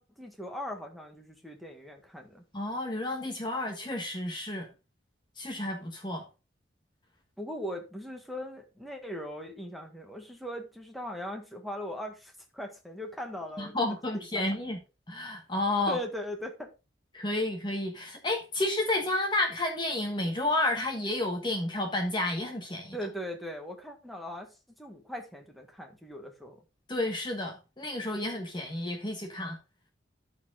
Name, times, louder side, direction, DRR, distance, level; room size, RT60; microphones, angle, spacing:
voice 1, 0.0-2.4 7.4-13.7 14.1-14.5 15.9-16.7 22.9-26.6, equal, ahead, 1.6 m, -39 dB
voice 2, 2.5-4.7 5.4-6.2 13.6-14.8 15.1-16.0 17.1-23.0 26.9-29.6, left 2 dB, 25° left, 1.3 m, -31 dB
13.5 x 4.5 x 3.8 m
head